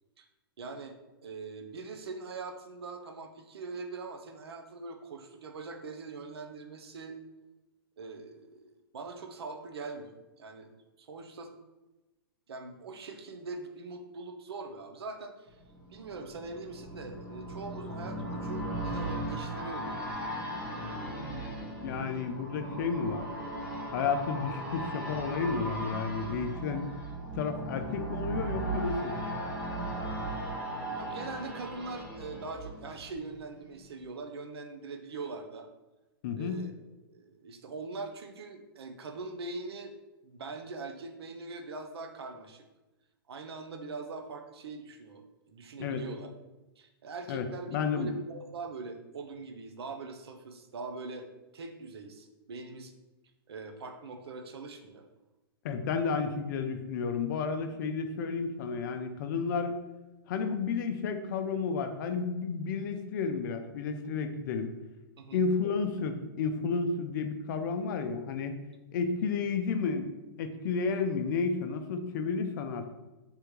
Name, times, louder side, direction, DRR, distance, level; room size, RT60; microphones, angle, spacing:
voice 1, 0.6-0.9 1.2-7.2 8.0-10.7 11.0-11.5 12.5-15.6 15.9-20.2 31.0-35.7 36.3-36.7 37.1-39.9 40.2-42.6 43.3-46.3 46.8-51.3 51.5-52.9 53.5-55.0 65.2-65.4, right 3 dB, 85° right, 5 dB, 0.5 m, -42 dB
sound 1, 15.6-33.4 33.7-33.8, right 1 dB, 10° right, 1.1 m, -37 dB
voice 2, 21.8-23.3 23.9-26.8 27.3-29.2 36.2-36.7 45.8-46.0 47.3-48.1 55.6-59.7 60.3-64.7 65.3-68.5 68.9-70.1 70.4-72.9, left 5 dB, 50° left, 7 dB, 0.4 m, -31 dB
3.4 x 2.2 x 3.0 m, 1.1 s
hypercardioid pair, 135°, 13 cm